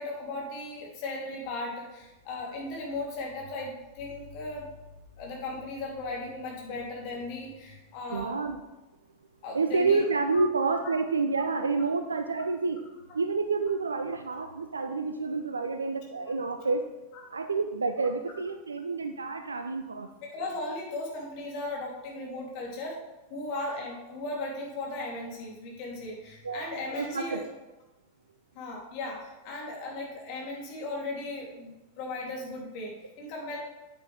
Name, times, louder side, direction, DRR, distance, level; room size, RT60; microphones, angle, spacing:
voice 1, 0.0-4.7 5.2-8.3 9.4-10.0 20.3-23.0 23.3-27.4 28.5-33.6, left 2 dB, 45° left, -2 dB, 3.0 m, -37 dB
voice 2, 8.1-8.6 9.5-12.8 13.1-16.8 17.3-20.1 26.4-26.7 27.0-27.4, right 4 dB, 75° right, 7 dB, 0.5 m, -29 dB
8.9 x 8.6 x 3.4 m, 1.0 s
figure-of-eight pair, 90°, 0 cm